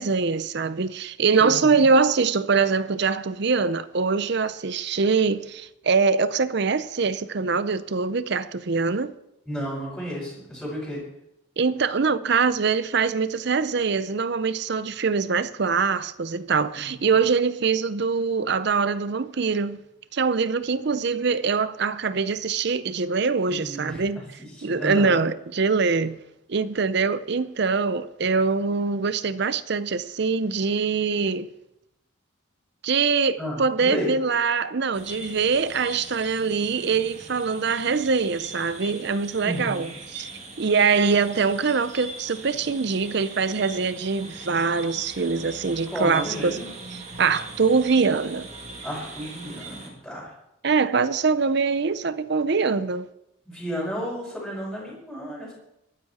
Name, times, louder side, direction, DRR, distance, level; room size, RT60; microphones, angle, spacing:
voice 1, 0.0-9.1 11.6-19.8 20.1-24.2 24.6-26.2 26.5-31.5 32.8-40.3 40.6-46.6 46.9-48.5 50.6-53.1, right 5 dB, 55° right, 0.6 m, -23 dB
voice 2, 1.4-1.9 9.5-11.0 16.7-17.3 23.5-24.2 24.6-25.1 33.4-34.1 39.4-39.9 45.9-46.7 48.8-50.3 53.5-55.5, equal, ahead, 5.2 m, -33 dB
sound 1, 34.9-49.9, right 2 dB, 35° right, 2.2 m, -41 dB
22.5 x 9.8 x 4.3 m
head